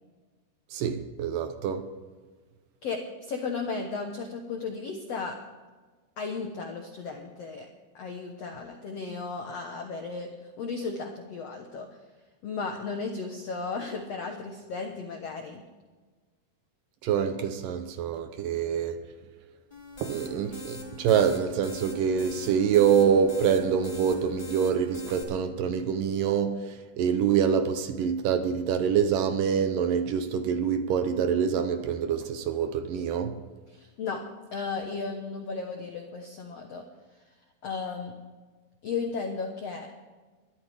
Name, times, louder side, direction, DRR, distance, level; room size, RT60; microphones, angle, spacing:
voice 1, 0.7-2.0 17.0-19.1 20.0-33.4, right 7 dB, 75° right, 2.1 m, -26 dB
voice 2, 2.8-5.4 6.2-7.7 7.9-11.9 12.4-15.6 33.7-34.2 34.5-36.8 37.6-38.1 38.8-39.9, left 4 dB, 85° left, 1.4 m, -35 dB
sound 1, 19.7-25.2, equal, 10° left, 2.5 m, -42 dB
21.5 x 13.0 x 3.5 m
omnidirectional pair, 4.7 m